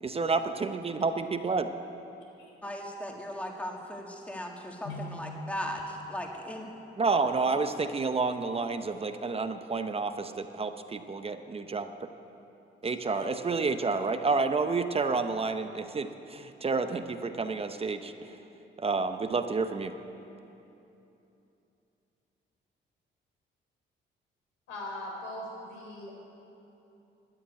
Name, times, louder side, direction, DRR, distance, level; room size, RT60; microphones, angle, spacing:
voice 1, 0.0-1.7 7.0-11.9 12.8-18.4 18.8-19.9, right 4 dB, 30° right, 8 dB, 0.7 m, -30 dB
voice 2, 2.6-5.8 6.1-6.7, equal, 5° left, 0 dB, 1.9 m, -37 dB
voice 3, 24.7-26.2, left 1 dB, 90° left, -1 dB, 4.0 m, -39 dB
13.0 x 8.9 x 9.5 m, 2.9 s
cardioid pair, 90°, 20 cm